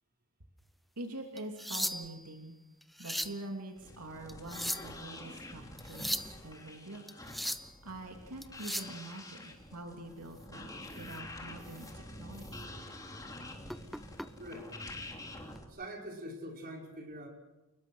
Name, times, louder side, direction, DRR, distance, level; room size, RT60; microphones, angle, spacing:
voice 1, 1.0-2.6 3.0-7.1 7.5-12.7, right 2 dB, 85° right, 2 dB, 2.9 m, -45 dB
sound 1, 1.4-2.3 2.8-3.4 4.3-5.0 5.8-6.3 7.1-7.7 8.4-9.0 11.0-11.2 11.7-11.9 12.4-12.5 13.7-14.3 15.4-15.6, equal, ahead, 0.8 m, -37 dB
sound 2, 3.8-15.6, left 1 dB, 15° left, 3.3 m, -47 dB
voice 2, 14.4-14.7 15.7-17.3, equal, 45° right, 0 dB, 5.4 m, -44 dB
29.5 x 21.0 x 6.3 m, 1.0 s
head